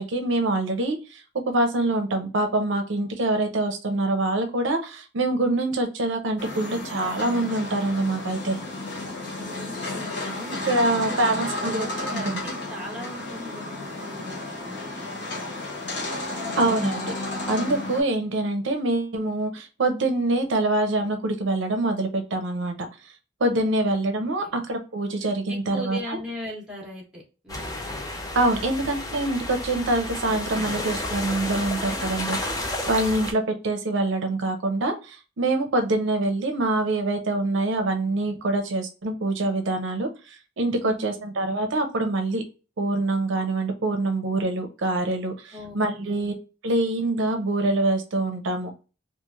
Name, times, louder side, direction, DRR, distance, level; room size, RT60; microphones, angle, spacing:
voice 1, 0.0-8.6 10.7-12.2 16.6-17.2 17.5-22.7 23.0-23.1 23.4-26.0 28.3-42.4 42.8-46.4 46.6-48.7, right 2 dB, 70° right, 5 dB, 0.5 m, -25 dB
sound 1, 6.4-18.0, left 2 dB, 55° left, 0.8 m, -32 dB
voice 2, 9.4-15.1 23.8-24.0 24.4-24.5 25.2-27.7 40.7-41.3 45.5-46.4, left 1 dB, 5° right, -2 dB, 1.0 m, -39 dB
sound 2, 27.5-33.3, left 1 dB, 20° left, 0.4 m, -31 dB
3.1 x 2.4 x 2.3 m, 0.33 s
head